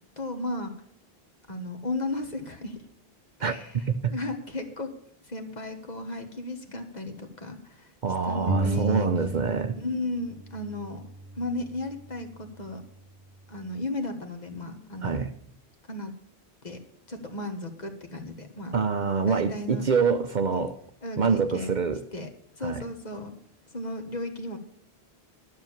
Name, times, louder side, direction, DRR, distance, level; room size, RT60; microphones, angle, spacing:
voice 1, 0.2-0.7 1.5-2.8 3.4-3.8 4.1-4.9 5.2-7.9 8.2-9.1 9.8-11.1 11.3-12.8 13.5-15.3 15.9-16.1 16.6-16.8 17.1-18.7 19.2-19.9 20.5-20.6 21.0-21.7 22.1-22.3 22.6-23.3 23.7-24.6, left 2 dB, 45° left, 1.5 m, -34 dB
voice 2, 3.4-4.1 8.0-9.8 15.0-15.3 18.7-20.8 21.2-22.0 22.6-22.8, right 5 dB, 55° right, 0.7 m, -26 dB
sound 1, 8.5-10.0 10.2-12.0, right 2 dB, 25° right, 1.4 m, -32 dB
12.0 x 6.6 x 7.1 m
omnidirectional pair, 1.1 m